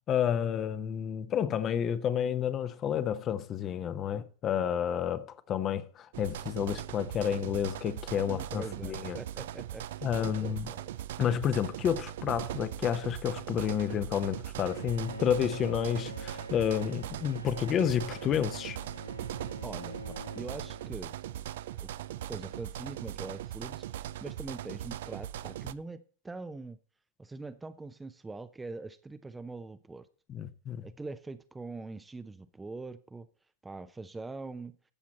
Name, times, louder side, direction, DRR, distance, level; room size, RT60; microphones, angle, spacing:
voice 1, 0.1-9.2 10.0-10.7 11.2-18.8 30.3-30.8, left 9 dB, 30° left, 0.9 m, -30 dB
sound 1, 6.1-25.7, right 12 dB, 55° right, 0.5 m, -40 dB
voice 2, 8.3-10.9 19.6-21.1 21.8-21.9 22.3-26.8 27.2-30.1 30.8-33.3 33.6-34.8, right 3 dB, 10° right, 0.7 m, -43 dB
Bowed string instrument, 14.7-21.5, equal, 90° right, 1.5 m, -45 dB
14.0 x 7.2 x 4.3 m
figure-of-eight pair, 90°, 0 cm